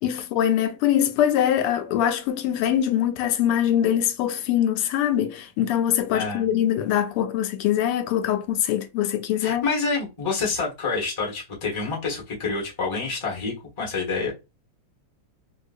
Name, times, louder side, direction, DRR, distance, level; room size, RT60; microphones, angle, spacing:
voice 1, 0.0-9.6, left 10 dB, 85° left, 1.5 m, -23 dB
voice 2, 6.1-6.5 9.4-14.3, left 4 dB, 20° left, 0.8 m, -27 dB
3.3 x 2.8 x 2.5 m
omnidirectional pair, 2.4 m